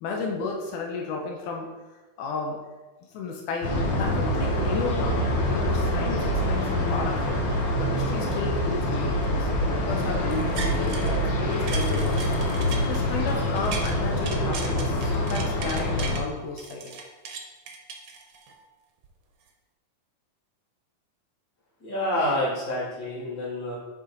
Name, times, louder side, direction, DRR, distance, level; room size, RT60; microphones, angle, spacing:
voice 1, 0.0-1.7 2.2-2.6 3.1-7.4 7.8-12.3 12.9-17.0, left 4 dB, 90° left, 1 dB, 2.4 m, -33 dB
sound 1, 3.6-16.2, left 1 dB, 55° left, 1.3 m, -25 dB
sound 2, 10.3-11.2 11.5-13.9 14.2-16.2 16.6-18.6 19.0-19.1, right 5 dB, 70° right, 1.3 m, -38 dB
voice 2, 21.8-23.7, left 1 dB, 35° left, -8 dB, 3.1 m, -28 dB
9.1 x 4.2 x 3.9 m, 1.2 s
omnidirectional pair, 3.5 m